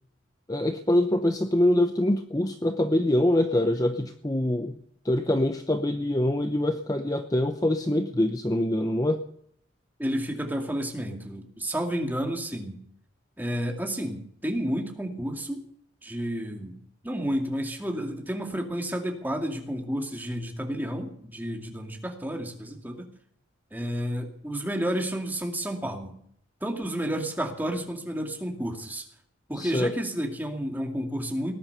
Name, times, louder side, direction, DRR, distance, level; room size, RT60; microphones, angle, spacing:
voice 1, 0.5-4.8 5.0-9.2 29.5-29.9, left 1 dB, 20° left, 7 dB, 0.7 m, -24 dB
voice 2, 10.0-12.8 13.4-15.6 16.0-16.8 17.0-23.1 23.7-26.1 26.6-29.1 29.5-31.5, equal, 10° right, 2 dB, 2.3 m, -31 dB
18.5 x 10.5 x 6.8 m, 0.67 s
head